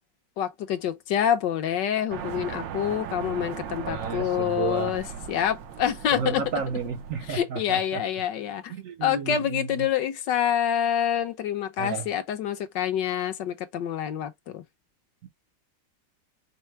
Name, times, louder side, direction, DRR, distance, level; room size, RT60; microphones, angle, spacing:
voice 1, 0.4-6.4 7.3-8.7 9.0-14.6, left 9 dB, 80° left, 1.5 m, -27 dB
sound 1, 2.1-7.4, right 8 dB, 85° right, 1.5 m, -38 dB
voice 2, 3.8-5.0 6.1-8.0 8.7-9.9 11.8-12.1 15.2-15.3, right 5 dB, 65° right, 0.9 m, -32 dB
5.4 x 2.0 x 4.4 m
omnidirectional pair, 1.9 m